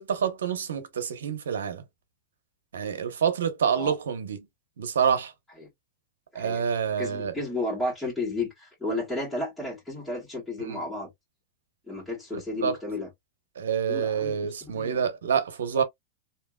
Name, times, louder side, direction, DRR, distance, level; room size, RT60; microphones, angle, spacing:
voice 1, 0.0-1.8 2.7-4.4 4.8-5.3 6.3-7.3 10.6-10.8 12.6-12.8 13.6-15.8, right 7 dB, 80° right, 0.9 m, -27 dB
voice 2, 6.3-6.7 7.0-11.1 11.9-13.1 13.9-15.1, left 2 dB, 5° left, 2.1 m, -33 dB
3.3 x 2.9 x 2.3 m
hypercardioid pair, 105°, 0 cm